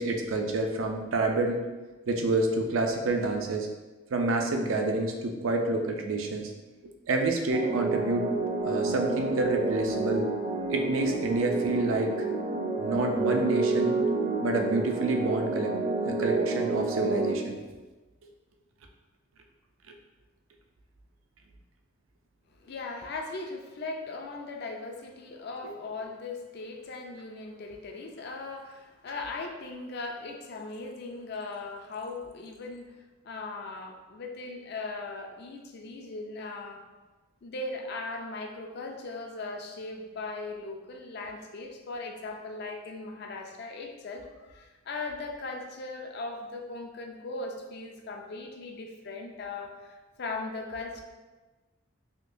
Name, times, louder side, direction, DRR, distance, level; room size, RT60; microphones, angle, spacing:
voice 1, 0.0-1.6 2.1-3.7 4.1-6.5 7.1-8.3 8.6-10.3 10.7-12.3 12.8-14.0 14.4-15.8 16.0-17.6 25.6-25.7, right 2 dB, 85° right, 3 dB, 0.5 m, -28 dB
sound 1, 7.5-17.4, right 3 dB, 35° right, 0.5 m, -29 dB
voice 2, 22.6-32.9 33.2-36.8 37.4-51.0, left 3 dB, 55° left, 2 dB, 0.4 m, -38 dB
3.6 x 2.9 x 2.6 m, 1.2 s
head